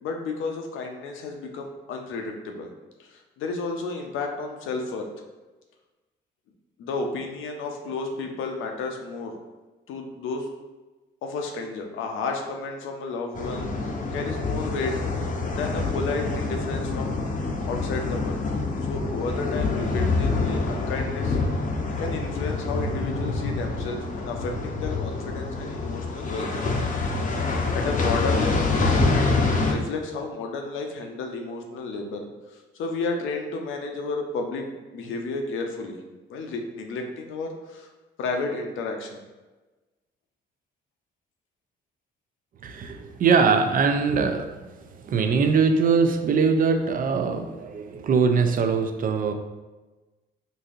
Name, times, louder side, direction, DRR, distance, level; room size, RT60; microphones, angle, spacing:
voice 1, 0.0-2.7 3.0-5.1 6.8-9.3 9.9-10.5 11.2-15.0 15.5-17.1 17.7-18.5 18.8-21.4 22.0-26.7 27.7-36.0 36.3-37.9 38.2-39.2, left 3 dB, 80° left, 3 dB, 0.6 m, -32 dB
sound 1, 13.3-29.7, left 3 dB, 40° left, 0.6 m, -26 dB
voice 2, 42.6-49.3, right 5 dB, 45° right, 6 dB, 0.4 m, -22 dB
4.0 x 2.6 x 2.5 m, 1.2 s
cardioid pair, 90°, 20 cm